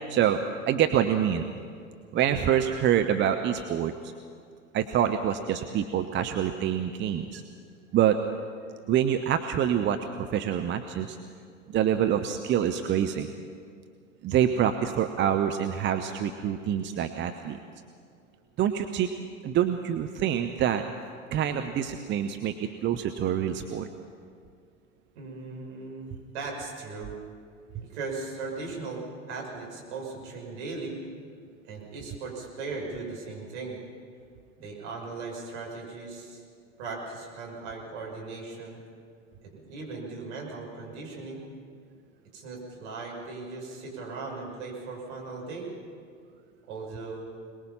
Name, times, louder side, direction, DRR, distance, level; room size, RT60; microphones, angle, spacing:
voice 1, 0.1-0.4 0.7-1.5 2.1-4.1 4.7-7.4 7.9-8.2 8.9-11.2 11.7-13.3 14.2-17.6 18.6-19.1 19.4-20.8 21.3-23.9 27.7-27.8, right 9 dB, 30° right, 7 dB, 0.9 m, -26 dB
voice 2, 25.1-27.2 27.8-29.0 29.3-31.0 31.6-33.8 34.6-36.4 36.8-38.8 39.4-41.4 42.3-45.7 46.7-47.3, right 3 dB, 60° right, -1 dB, 5.9 m, -38 dB
22.5 x 20.5 x 5.7 m, 2.2 s
figure-of-eight pair, 85°, 39 cm